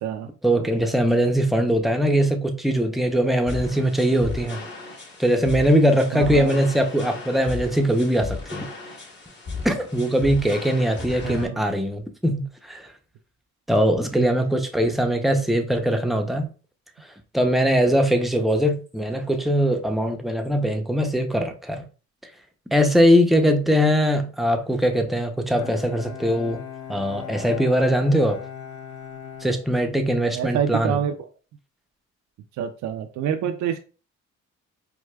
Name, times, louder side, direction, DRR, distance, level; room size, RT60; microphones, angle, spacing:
voice 1, 0.4-4.6 5.2-8.7 9.6-12.9 13.7-16.5 17.3-21.8 22.7-26.6 26.9-28.4 29.4-31.0, equal, ahead, 0.5 m, -21 dB
sound 1, 3.5-11.5, left 4 dB, 35° left, 1.0 m, -35 dB
voice 2, 6.1-6.5 11.2-11.6 30.3-31.1 32.6-33.8, right 9 dB, 70° right, 0.4 m, -26 dB
Bowed string instrument, 25.5-30.4, left 8 dB, 75° left, 0.7 m, -39 dB
4.7 x 2.2 x 2.2 m
cardioid pair, 90°, 30 cm